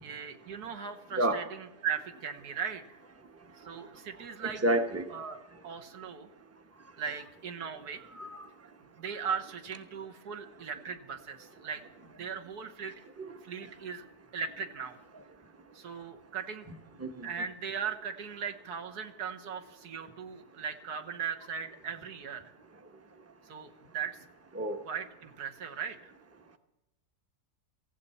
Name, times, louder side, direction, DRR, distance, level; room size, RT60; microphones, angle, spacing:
voice 1, 0.0-3.0 3.6-4.6 5.1-5.4 5.6-6.3 7.0-8.0 9.0-12.9 13.4-14.0 14.3-15.0 15.7-16.7 17.2-22.5 23.5-24.2 24.8-26.1, right 7 dB, 70° right, 5 dB, 1.7 m, -38 dB
voice 2, 4.6-5.1 8.1-8.4 13.2-13.3 17.0-17.3 24.6-24.8, right 1 dB, 10° right, 7 dB, 0.8 m, -29 dB
18.0 x 15.5 x 4.2 m, 0.98 s
omnidirectional pair, 1.7 m